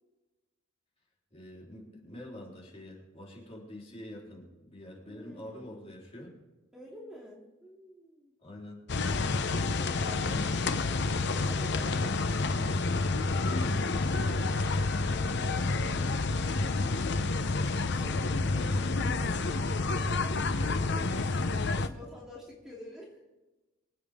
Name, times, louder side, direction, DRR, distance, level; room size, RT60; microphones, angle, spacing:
voice 1, 1.3-6.3 8.4-8.8 9.4-9.8 10.0-10.8 13.6-14.6 18.1-18.3 21.1-21.3, left 1 dB, 30° left, -3 dB, 3.9 m, -46 dB
voice 2, 5.1-5.8 6.7-8.3 9.5-12.2 15.2-16.7 17.8-19.5 20.1-23.3, left 1 dB, 5° right, -5 dB, 2.8 m, -49 dB
sound 1, 8.9-21.9, left 3 dB, 60° left, 0.8 m, -29 dB
25.5 x 8.5 x 3.7 m, 1.1 s
head